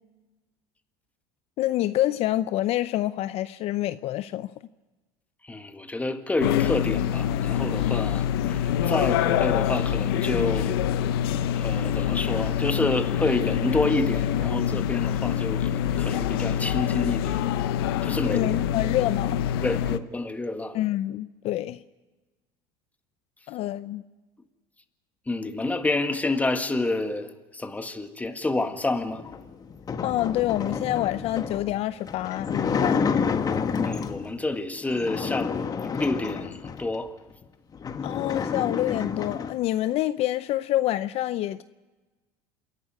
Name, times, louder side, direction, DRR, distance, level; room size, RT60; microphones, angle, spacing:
voice 1, 1.6-4.5 18.2-19.4 20.7-21.8 23.5-24.0 30.0-33.0 38.0-41.6, left 14 dB, 55° left, 0.6 m, -27 dB
voice 2, 5.4-10.8 11.6-17.4 18.0-18.5 19.6-20.8 25.3-29.2 33.8-37.2, left 2 dB, 10° left, 1.8 m, -29 dB
sound 1, 6.4-20.0, left 10 dB, 85° left, 0.9 m, -25 dB
sound 2, 29.1-34.3 34.9-36.9 37.4-37.5 37.7-39.6, left 6 dB, 30° left, 1.4 m, -29 dB
27.5 x 11.5 x 9.6 m
supercardioid pair, 100°, 12 cm